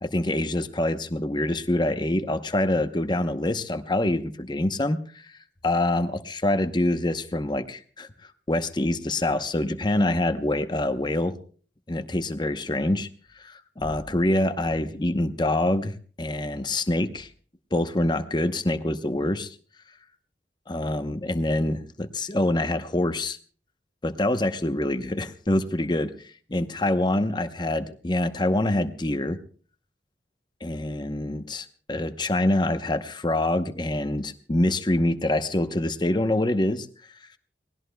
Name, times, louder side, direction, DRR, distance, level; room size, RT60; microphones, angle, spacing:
voice 1, 0.0-5.3 5.6-8.1 8.5-11.4 11.9-13.1 13.4-17.3 17.7-19.6 20.7-23.4 24.0-29.4 30.6-36.9, left 1 dB, 25° left, 9 dB, 0.9 m, -25 dB
29.0 x 19.0 x 2.3 m, 0.42 s
head